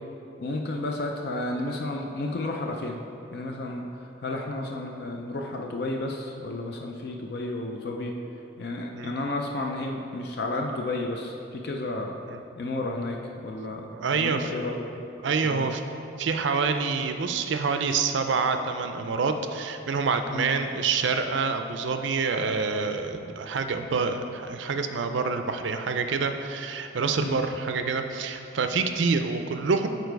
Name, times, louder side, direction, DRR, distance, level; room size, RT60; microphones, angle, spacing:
voice 1, 0.4-3.0 3.3-8.1 8.6-12.1 12.6-15.1 15.4-15.7 20.3-20.5 27.2-27.4, left 2 dB, 55° left, 1 dB, 0.4 m, -32 dB
voice 2, 13.9-14.5 15.2-15.8 16.2-29.9, right 4 dB, 70° right, 7 dB, 0.4 m, -27 dB
6.8 x 4.6 x 4.6 m, 2.8 s
head